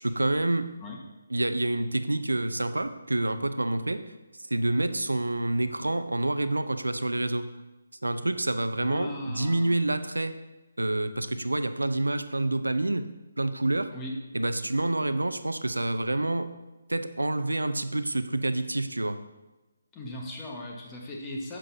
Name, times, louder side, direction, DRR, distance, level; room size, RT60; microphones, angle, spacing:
voice 1, 0.0-0.7 1.3-4.1 4.5-7.6 8.0-10.4 10.8-13.1 13.4-13.9 14.3-16.5 16.9-19.2, right 2 dB, 80° right, 10 dB, 0.6 m, -28 dB
voice 2, 8.8-9.8 13.9-14.1 19.9-21.6, left 1 dB, 15° left, -2 dB, 1.4 m, -38 dB
9.8 x 7.6 x 2.7 m, 1.1 s
figure-of-eight pair, 145°, 0 cm